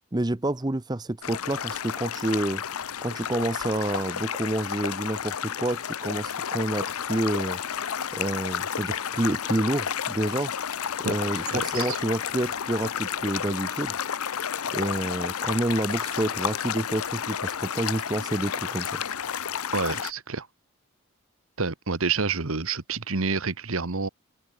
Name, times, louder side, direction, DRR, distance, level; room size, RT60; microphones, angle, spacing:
voice 1, 0.1-2.6 3.0-7.6 8.1-10.5 11.0-14.0 14.7-18.9, right 1 dB, 20° right, 0.6 m, -28 dB
sound 1, 1.2-20.1, left 8 dB, 80° left, 0.8 m, -31 dB
voice 2, 11.5-12.0 19.7-20.5 21.6-24.1, right 4 dB, 70° right, 1.4 m, -28 dB
open air
head